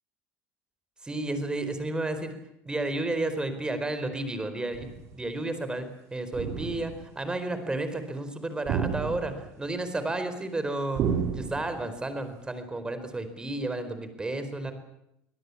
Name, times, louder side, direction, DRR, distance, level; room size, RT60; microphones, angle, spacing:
voice 1, 1.0-2.3 2.7-14.7, right 2 dB, 15° right, 10 dB, 4.4 m, -32 dB
sound 1, 4.7-5.1 6.3-7.1 8.6-9.6 11.0-11.9, right 7 dB, 55° right, 4.9 m, -31 dB
24.5 x 18.0 x 8.5 m, 0.80 s
supercardioid pair, 100°, 6 cm